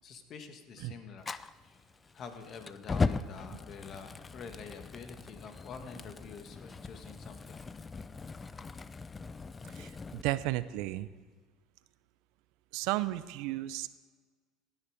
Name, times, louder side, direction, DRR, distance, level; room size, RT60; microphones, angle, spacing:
voice 1, 0.0-1.4 1.6-1.8 2.1-7.6, left 5 dB, 50° left, 7 dB, 1.7 m, -47 dB
Fire, 1.2-10.2, left 4 dB, 25° left, 0.5 m, -38 dB
voice 2, 9.7-11.1 12.7-13.9, right 17 dB, 70° right, 15 dB, 0.6 m, -33 dB
16.5 x 9.8 x 5.0 m, 1.5 s
hypercardioid pair, 80°, 0 cm